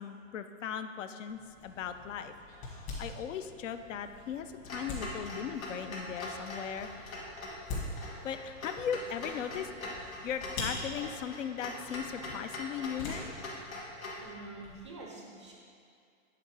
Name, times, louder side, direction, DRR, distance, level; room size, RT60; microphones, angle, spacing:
voice 1, 0.0-2.3 3.0-7.1 8.2-9.7 10.2-13.3, left 8 dB, 65° left, 9 dB, 0.5 m, -38 dB
sound 1, 1.3-14.8, left 2 dB, 35° left, 1.8 m, -45 dB
sound 2, 1.6-10.9, left 2 dB, 15° left, 0.7 m, -58 dB
Clock, 4.7-14.2, left 2 dB, 85° left, 1.6 m, -43 dB
voice 2, 14.2-15.6, right 3 dB, 25° right, -1 dB, 0.4 m, -46 dB
8.2 x 3.9 x 4.7 m, 2.3 s
hypercardioid pair, 160°, 40 cm